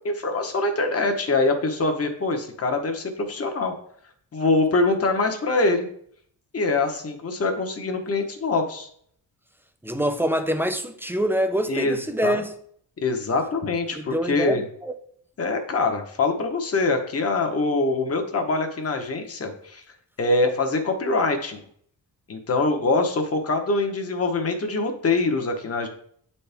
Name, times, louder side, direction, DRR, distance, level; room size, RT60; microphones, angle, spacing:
voice 1, 0.0-3.7 4.3-5.9 6.5-8.9 11.7-12.4 13.0-14.6 15.4-19.8 20.2-21.6 22.3-25.9, left 3 dB, 35° left, 1.0 m, -24 dB
voice 2, 9.8-12.5 14.0-14.9, right 1 dB, 5° right, 0.5 m, -25 dB
9.1 x 4.3 x 3.4 m
wide cardioid pair, 135°, 41 cm